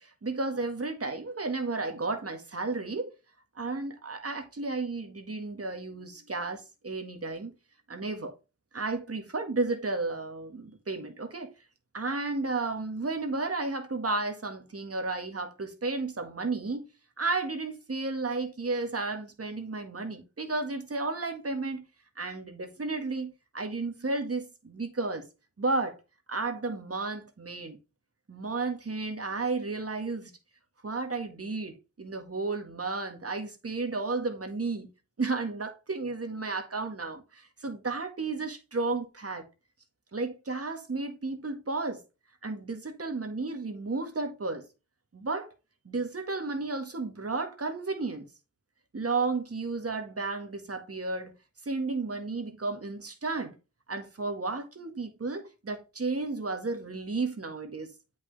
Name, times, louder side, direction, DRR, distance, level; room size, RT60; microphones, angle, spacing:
voice 1, 0.0-3.1 3.6-7.5 7.9-8.3 8.7-11.5 11.9-16.9 17.2-21.9 22.2-25.3 25.6-26.0 26.3-27.8 28.3-30.3 30.8-34.9 35.2-39.4 40.1-42.0 42.4-44.6 45.1-45.5 45.9-48.3 48.9-51.3 51.6-53.5 53.9-57.9, right 3 dB, 45° right, 1.9 m, -33 dB
8.0 x 5.5 x 3.4 m
cardioid pair, 45°, 32 cm